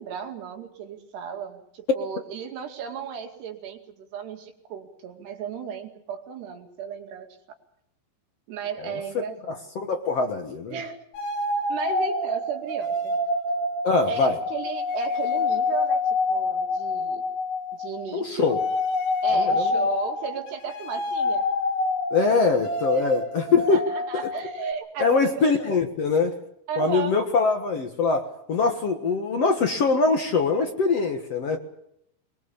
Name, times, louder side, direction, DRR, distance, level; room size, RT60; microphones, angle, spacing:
voice 1, 0.0-7.3 8.5-9.6 10.7-11.1 11.7-13.2 14.1-16.0 16.3-17.2 17.7-18.6 19.2-21.4 22.4-22.5 22.9-23.1 23.7-25.8 26.7-27.2, right 7 dB, 90° right, 4 dB, 4.5 m, -34 dB
voice 2, 9.8-10.8 13.8-14.4 18.1-18.6 19.3-19.9 22.1-23.8 25.0-26.3 26.8-31.6, left 4 dB, 55° left, 4 dB, 1.9 m, -23 dB
sound 1, 11.1-18.1 18.4-24.7, left 3 dB, 85° left, 4.7 m, -27 dB
23.0 x 22.5 x 7.1 m, 0.74 s
omnidirectional pair, 4.6 m